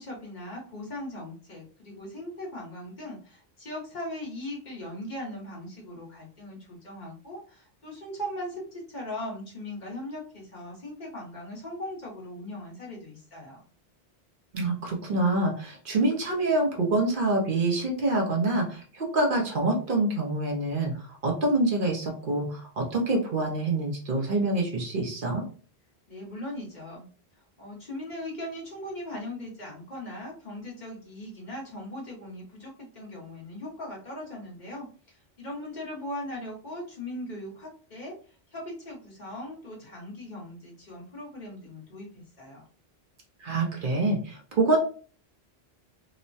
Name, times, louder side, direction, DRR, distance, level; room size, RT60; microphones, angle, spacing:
voice 1, 0.0-13.6 26.1-27.1 27.6-42.6, left 1 dB, 45° left, -3 dB, 1.1 m, -39 dB
voice 2, 14.5-25.4 43.4-44.8, right 2 dB, 60° right, 0 dB, 0.8 m, -26 dB
2.9 x 2.1 x 2.5 m, 0.40 s
omnidirectional pair, 1.1 m